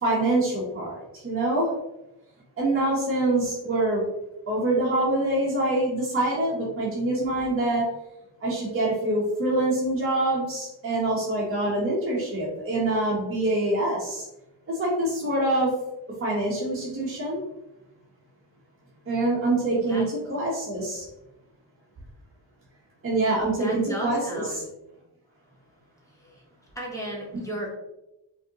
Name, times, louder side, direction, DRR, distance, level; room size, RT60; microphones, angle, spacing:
voice 1, 0.0-1.7 2.6-4.0 4.5-7.9 8.4-14.3 14.7-15.7 16.2-17.4 19.1-20.0 20.3-21.0 23.0-24.4, right 2 dB, 30° right, -6 dB, 1.0 m, -25 dB
voice 2, 23.5-24.6 26.2-26.4 26.7-27.7, equal, 5° left, -3 dB, 1.0 m, -35 dB
5.1 x 2.7 x 2.9 m, 0.92 s
wide cardioid pair, 160°, 45 cm